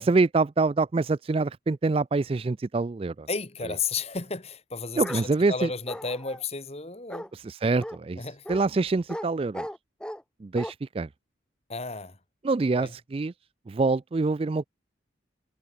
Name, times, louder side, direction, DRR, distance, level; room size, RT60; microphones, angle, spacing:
voice 1, 0.0-3.3 3.6-3.7 5.0-5.7 7.3-9.7 10.4-11.1 12.4-13.3 13.7-14.7, right 3 dB, 30° right, 0.3 m, -25 dB
voice 2, 3.3-7.3 8.2-8.4 11.7-12.2 12.8-12.9, left 4 dB, 35° left, 2.0 m, -33 dB
Bark, 5.0-5.3 5.9-6.4 7.1-7.3 7.8-8.0 8.5-8.6 9.1-9.3 9.5-10.2 10.6-10.7, equal, 5° left, 1.6 m, -37 dB
head